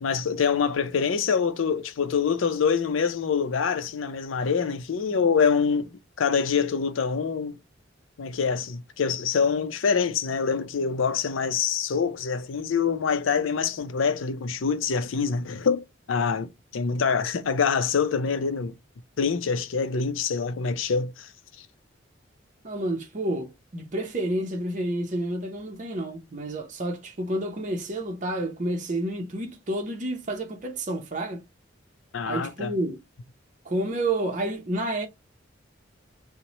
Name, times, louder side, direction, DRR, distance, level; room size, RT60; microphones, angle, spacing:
voice 1, 0.0-5.9 6.2-7.6 8.2-18.7 19.2-21.3 32.1-32.7, left 6 dB, 85° left, 0.5 m, -25 dB
voice 2, 22.6-31.4 32.3-33.0 33.6-35.1, right 1 dB, 40° right, 0.6 m, -30 dB
3.0 x 2.1 x 3.8 m
head